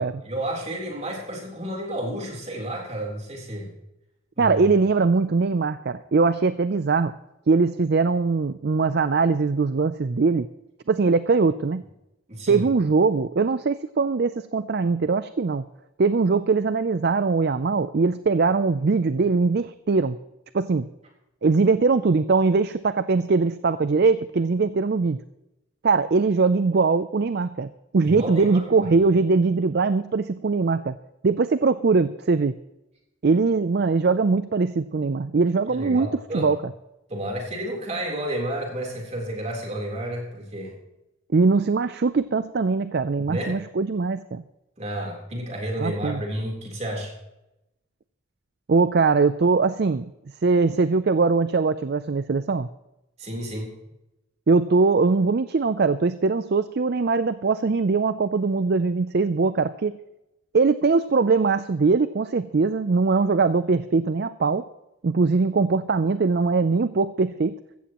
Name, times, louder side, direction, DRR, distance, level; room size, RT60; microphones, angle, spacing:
voice 1, 0.0-3.7 4.4-4.7 12.3-12.7 28.0-28.7 35.7-36.5 37.1-40.8 43.3-43.6 44.8-47.1 53.2-53.7, right 1 dB, 30° right, 0 dB, 3.7 m, -31 dB
voice 2, 4.4-7.1 7.5-10.5 10.9-11.8 12.5-15.6 16.0-20.2 20.5-20.9 21.4-25.2 25.8-31.0 31.2-32.5 33.2-36.1 36.3-36.6 41.3-44.4 45.8-46.2 48.7-50.1 50.4-52.7 54.5-60.0 60.5-64.7 65.0-67.5, right 4 dB, 50° right, 13 dB, 0.4 m, -21 dB
15.5 x 14.5 x 3.0 m, 0.91 s
head